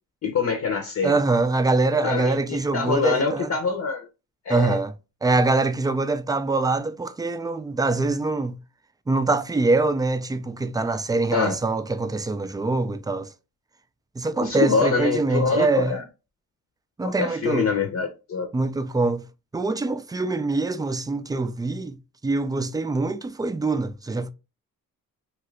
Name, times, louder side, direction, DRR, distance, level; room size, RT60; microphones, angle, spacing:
voice 1, 0.2-1.2 2.0-4.1 4.4-4.8 11.3-11.6 14.4-16.0 17.0-18.5, left 5 dB, 50° left, 0.7 m, -25 dB
voice 2, 1.0-3.5 4.5-4.9 5.2-8.6 9.1-13.3 14.2-15.9 17.0-17.7 18.5-19.3 19.5-22.0 22.2-24.3, right 3 dB, 10° right, 0.3 m, -24 dB
2.7 x 2.4 x 3.2 m
cardioid pair, 75°, 34 cm